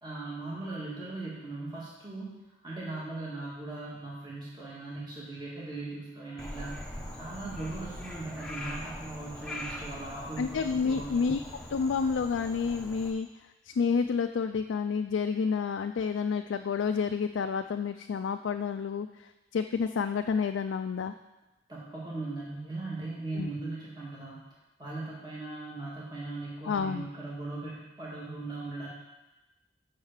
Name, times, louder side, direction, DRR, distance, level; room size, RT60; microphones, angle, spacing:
voice 1, 0.0-2.3 2.6-6.8 7.1-11.3 21.7-24.4 24.8-28.9, right 2 dB, 20° right, -6 dB, 1.7 m, -39 dB
Frog, 6.4-13.1, left 1 dB, 5° left, 0.8 m, -42 dB
voice 2, 10.4-11.4 11.7-13.3 13.7-19.1 19.5-21.1 23.3-23.5 26.7-27.1, left 5 dB, 75° left, 6 dB, 0.3 m, -29 dB
6.5 x 5.6 x 7.2 m, 1.0 s
head